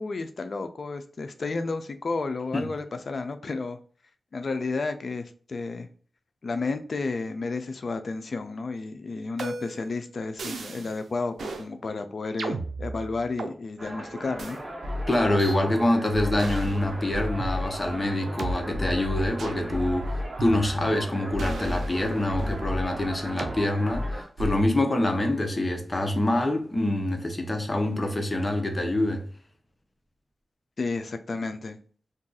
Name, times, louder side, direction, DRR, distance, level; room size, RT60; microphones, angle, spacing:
voice 1, 0.0-3.8 4.3-5.9 6.4-14.6 30.8-31.8, left 3 dB, 60° left, 0.4 m, -32 dB
sound 1, 9.4-9.9 10.4-10.9 11.4-11.7 12.4-13.5 14.4-14.5 15.4-15.6 16.4-16.8 17.4-17.5 18.4-18.5 19.4-19.6 20.4-21.0 21.4-22.6 23.4-23.6 24.4-24.8, right 3 dB, 90° right, 0.4 m, -35 dB
sound 2, 13.8-24.2, left 1 dB, 35° right, 1.1 m, -34 dB
voice 2, 15.1-20.1 20.4-29.2, left 1 dB, 30° left, 0.7 m, -25 dB
2.6 x 2.3 x 3.8 m
cardioid pair, 60°, 0 cm